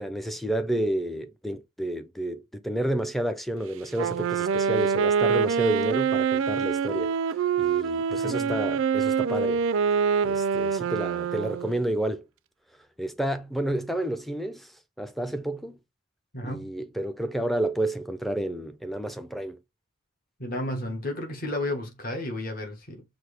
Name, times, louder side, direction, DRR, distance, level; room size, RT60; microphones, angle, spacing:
voice 1, 0.0-7.1 7.6-9.6 10.2-12.2 13.0-14.7 15.0-15.8 16.4-19.6, right 1 dB, ahead, 0.4 m, -30 dB
Wind instrument woodwind instrument, 3.9-11.8, right 6 dB, 75° right, 0.3 m, -25 dB
voice 2, 16.3-16.7 20.4-23.0, left 1 dB, 45° left, 1.2 m, -32 dB
5.9 x 2.6 x 3.3 m
head